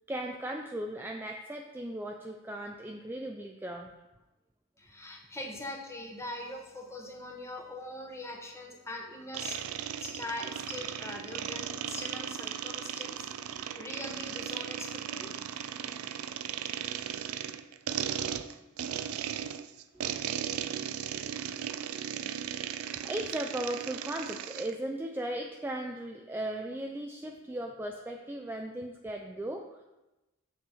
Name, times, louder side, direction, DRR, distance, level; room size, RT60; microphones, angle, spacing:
voice 1, 0.1-3.9 20.1-20.2 23.0-29.7, right 1 dB, 10° right, 2 dB, 0.4 m, -37 dB
voice 2, 4.8-9.6 10.0-13.2 13.8-15.3, left 1 dB, 15° left, 1 dB, 1.1 m, -41 dB
sound 1, 9.3-24.7, right 9 dB, 80° right, 0.4 m, -37 dB
7.2 x 5.9 x 4.5 m, 1.0 s
head